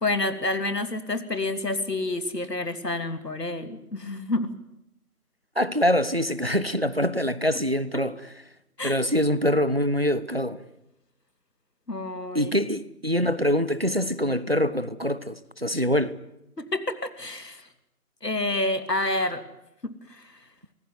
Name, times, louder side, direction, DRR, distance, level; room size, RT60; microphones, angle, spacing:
voice 1, 0.0-4.5 8.8-9.0 11.9-12.6 16.6-17.7 18.2-19.4 19.8-20.3, left 2 dB, 85° left, 3.1 m, -29 dB
voice 2, 5.6-8.3 8.8-10.6 12.3-16.2, equal, 40° right, 1.0 m, -24 dB
25.5 x 19.0 x 9.7 m
figure-of-eight pair, 180°, 47 cm